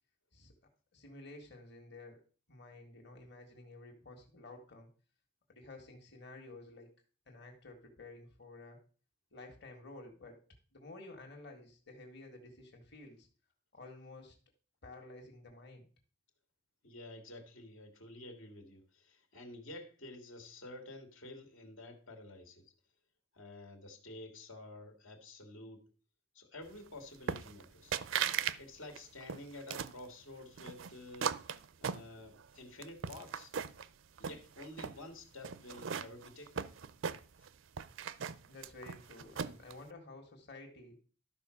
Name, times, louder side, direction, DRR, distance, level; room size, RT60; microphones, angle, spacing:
voice 1, 0.9-2.2 2.5-4.9 5.5-6.9 7.3-8.8 9.3-10.4 10.7-13.3 13.7-14.3 14.8-15.9 38.5-41.0, left 2 dB, 55° left, 1 dB, 1.8 m, -52 dB
voice 2, 16.8-22.7 23.3-25.9 26.3-28.0 28.6-31.4 31.8-33.5 34.2-36.6 37.4-37.5, left 2 dB, 85° left, 3 dB, 2.1 m, -50 dB
sound 1, 27.3-27.7 27.9-28.6 28.9-30.0 30.6-32.5 32.8-33.9 34.2-35.0 35.4-37.5 37.8-39.7, right 7 dB, 70° right, 0.5 m, -38 dB
12.0 x 4.5 x 6.3 m, 0.39 s
head